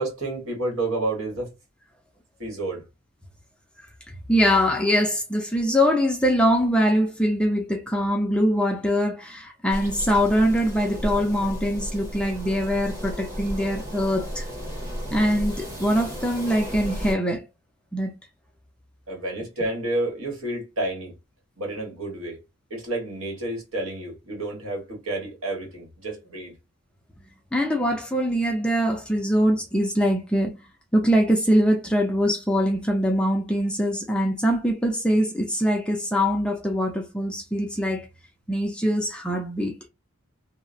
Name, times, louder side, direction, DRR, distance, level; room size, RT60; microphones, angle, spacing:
voice 1, 0.0-1.5 2.4-2.8 19.1-21.1 21.6-22.4 22.7-26.5, right 2 dB, 70° right, 1.5 m, -30 dB
voice 2, 4.3-14.5 15.1-17.4 17.9-18.1 27.5-30.5 30.9-38.1 38.5-39.7, equal, 5° left, 0.4 m, -23 dB
sound 1, 9.7-17.1, equal, 15° right, 0.8 m, -34 dB
2.8 x 2.0 x 2.5 m
head